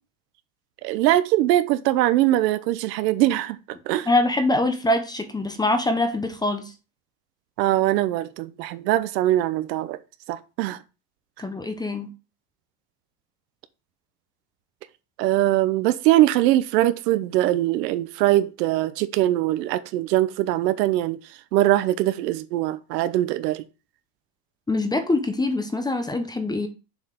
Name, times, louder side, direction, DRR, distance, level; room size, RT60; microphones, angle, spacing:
voice 1, 0.8-3.6 3.9-4.1 7.6-10.0 10.3-10.8 15.2-21.2 21.5-23.6, right 15 dB, 85° right, 0.9 m, -22 dB
voice 2, 4.1-6.7 11.4-12.1 24.7-26.7, left 2 dB, 10° left, 0.6 m, -24 dB
7.0 x 4.7 x 3.7 m
supercardioid pair, 135°, 48 cm